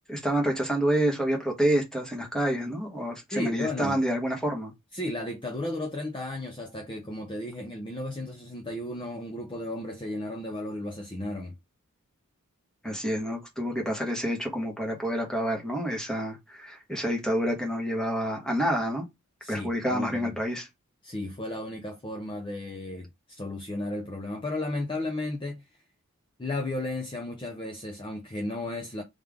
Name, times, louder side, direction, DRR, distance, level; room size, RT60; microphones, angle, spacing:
voice 1, 0.1-4.7 12.8-19.0 19.5-20.7, equal, 5° left, 1.3 m, -28 dB
voice 2, 3.3-4.0 4.9-11.6 19.4-20.3 21.0-25.6 26.4-29.0, left 1 dB, 20° left, 0.6 m, -34 dB
3.5 x 3.4 x 3.6 m
head